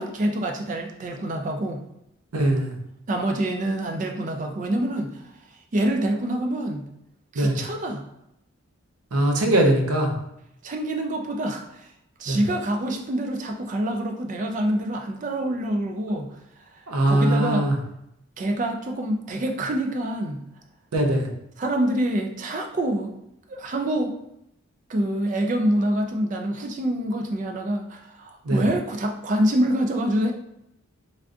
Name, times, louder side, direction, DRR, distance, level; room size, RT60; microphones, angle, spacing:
voice 1, 0.0-1.8 3.1-5.1 5.7-6.9 7.3-8.0 10.6-11.9 12.2-16.3 17.0-17.7 18.4-20.4 21.6-23.1 23.5-24.1 24.9-30.3, right 1 dB, 35° right, 3 dB, 0.3 m, -26 dB
voice 2, 2.3-2.7 7.4-7.6 9.1-10.2 12.3-12.4 16.9-17.8 20.9-21.3 28.4-28.6, right 1 dB, 85° right, 1 dB, 0.6 m, -21 dB
3.4 x 2.5 x 2.4 m, 0.81 s
head